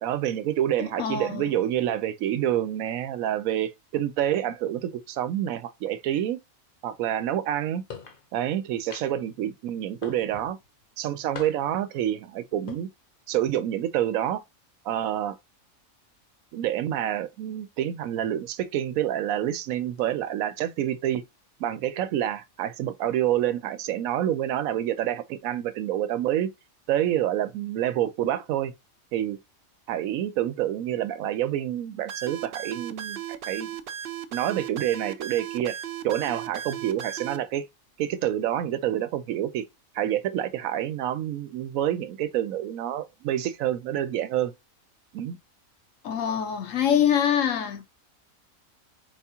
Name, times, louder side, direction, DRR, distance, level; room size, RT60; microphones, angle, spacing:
voice 1, 0.0-6.4 6.8-7.8 8.3-10.6 11.0-12.9 13.3-14.4 14.8-15.4 16.5-21.2 21.6-26.5 26.9-28.7 29.1-29.4 29.9-33.7 34.3-35.8 36.0-37.6 38.0-39.6 39.9-44.5 45.1-45.4, right 11 dB, 85° right, 1.0 m, -27 dB
voice 2, 1.0-1.5 46.0-47.8, left 9 dB, 70° left, 1.1 m, -24 dB
sound 1, 7.9-8.2 8.9-9.3 10.0-10.5 11.3-11.8 12.5-12.8, left 6 dB, 45° left, 0.9 m, -41 dB
sound 2, 32.1-37.4, right 10 dB, 60° right, 0.6 m, -36 dB
4.6 x 3.5 x 2.8 m
omnidirectional pair, 1.4 m